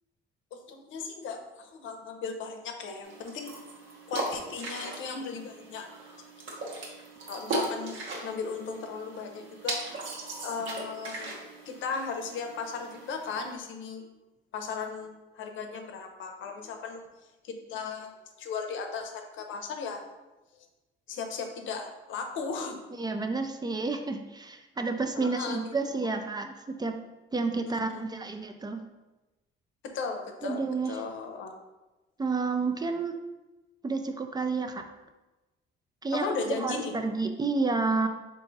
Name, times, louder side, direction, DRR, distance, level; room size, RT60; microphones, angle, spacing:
voice 1, 0.5-3.5 4.1-5.9 7.3-8.0 8.2-9.8 10.4-11.3 11.7-14.1 14.5-17.0 17.4-18.1 18.4-20.0 21.1-22.9 25.2-25.7 27.7-28.1 29.8-31.6 36.1-36.9, left 5 dB, 80° left, 4 dB, 0.6 m, -36 dB
sound 1, 3.0-13.5, right 2 dB, 70° right, 1.1 m, -38 dB
voice 2, 23.0-27.0 27.3-28.8 30.4-31.0 32.2-33.1 33.8-34.8 36.0-38.1, right 3 dB, 20° right, 6 dB, 0.3 m, -30 dB
3.7 x 2.6 x 3.9 m, 1.1 s
cardioid pair, 90°, 20 cm